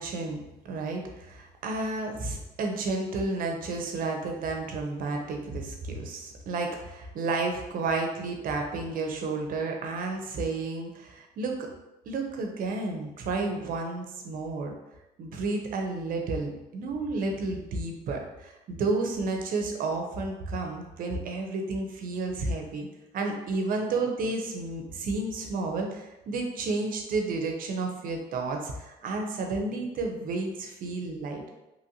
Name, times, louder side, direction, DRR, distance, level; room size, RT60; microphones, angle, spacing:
voice 1, 0.0-11.7 12.1-14.7 15.2-22.9 23.1-31.5, right 3 dB, 55° right, 2 dB, 0.6 m, -31 dB
2.9 x 2.5 x 2.8 m, 0.96 s
cardioid pair, 110°, 17 cm